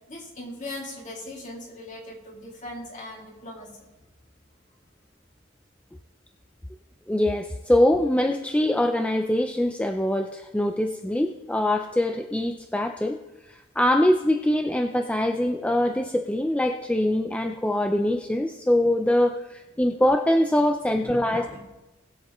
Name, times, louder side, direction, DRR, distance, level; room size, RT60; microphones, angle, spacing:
voice 1, 0.1-3.9 20.9-21.6, left 1 dB, 40° left, -1 dB, 2.5 m, -39 dB
voice 2, 7.1-13.2 13.5-21.6, left 1 dB, 5° left, 5 dB, 0.4 m, -23 dB
20.5 x 7.5 x 3.1 m, 1.0 s
head